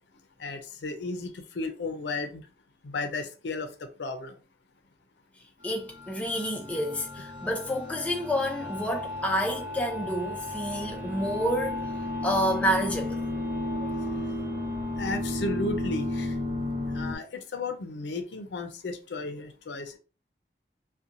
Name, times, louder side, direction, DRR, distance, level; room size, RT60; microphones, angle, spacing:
voice 1, 0.4-2.4 2.8-3.7 4.0-4.3 15.0-16.4 16.9-20.0, left 3 dB, 80° left, 0.5 m, -34 dB
voice 2, 5.6-11.9 12.2-13.2 14.0-14.1, equal, 10° left, 0.4 m, -29 dB
sound 1, 5.8-17.2, left 1 dB, 50° right, 0.8 m, -33 dB
2.8 x 2.2 x 2.5 m
head